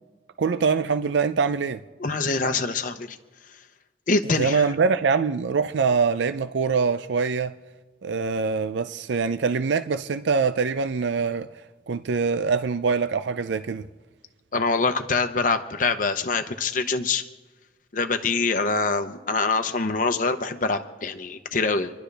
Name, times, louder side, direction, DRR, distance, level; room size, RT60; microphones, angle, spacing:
voice 1, 0.4-1.8 4.3-7.5 8.0-11.5 11.9-13.9, right 5 dB, 75° right, 0.4 m, -24 dB
voice 2, 2.0-3.2 4.1-4.7 14.5-17.2 17.9-21.9, left 4 dB, 45° left, 0.8 m, -24 dB
27.5 x 11.5 x 3.4 m
head